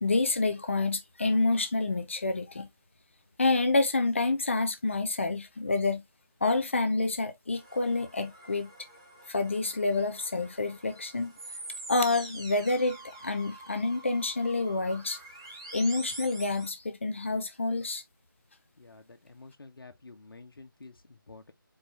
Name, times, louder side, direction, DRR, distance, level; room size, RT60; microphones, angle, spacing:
voice 1, 0.0-2.7 3.4-6.0 6.4-8.7 9.3-11.3 11.9-15.2 15.7-18.0, left 3 dB, 35° left, 0.6 m, -28 dB
sound 1, 7.6-16.7, right 2 dB, 15° right, 0.7 m, -46 dB
voice 2, 18.8-21.5, left 3 dB, 80° left, 1.2 m, -50 dB
4.6 x 3.4 x 2.8 m
figure-of-eight pair, 175°, 12 cm